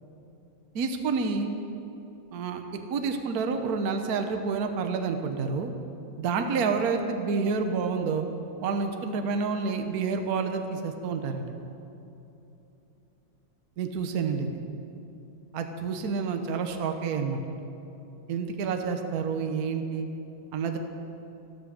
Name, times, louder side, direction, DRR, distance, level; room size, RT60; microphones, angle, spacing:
voice 1, 0.7-1.5 2.3-2.6 2.9-5.7 6.2-8.3 8.6-11.5 13.8-14.5 15.5-17.6 18.3-20.1 20.5-20.8, right 5 dB, 55° right, 6 dB, 1.3 m, -29 dB
14.0 x 12.5 x 6.5 m, 2.9 s
omnidirectional pair, 2.1 m